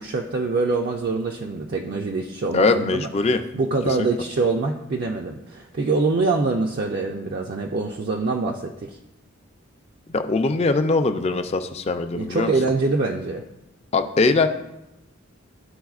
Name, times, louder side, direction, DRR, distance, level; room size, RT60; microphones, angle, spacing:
voice 1, 0.0-3.1 3.5-9.0 12.1-13.4, right 3 dB, 50° right, 1 dB, 0.4 m, -24 dB
voice 2, 2.5-3.4 4.0-4.1 10.1-12.5 13.9-14.5, left 3 dB, 30° left, 8 dB, 0.4 m, -21 dB
11.5 x 4.1 x 2.4 m, 0.90 s
head